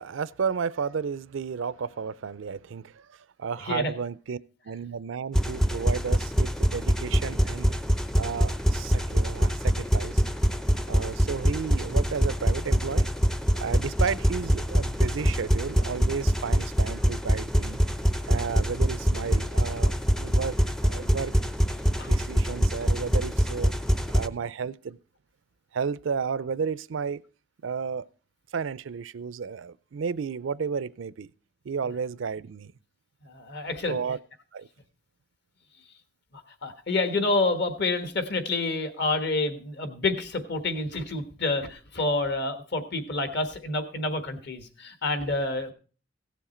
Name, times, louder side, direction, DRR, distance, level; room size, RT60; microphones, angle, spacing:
voice 1, 0.0-4.4 4.7-7.7 8.1-10.2 10.9-13.1 13.6-17.8 18.3-21.3 22.0-23.7 24.1-25.0 25.7-27.2 27.6-28.0 28.5-31.3 31.7-32.7 33.9-34.2 34.5-34.7, right 6 dB, 75° right, 0.4 m, -32 dB
sound 1, 5.3-24.3, equal, 5° left, 0.4 m, -24 dB
voice 2, 33.2-34.0 36.3-45.7, left 2 dB, 55° left, 1.4 m, -28 dB
16.0 x 7.2 x 4.3 m
head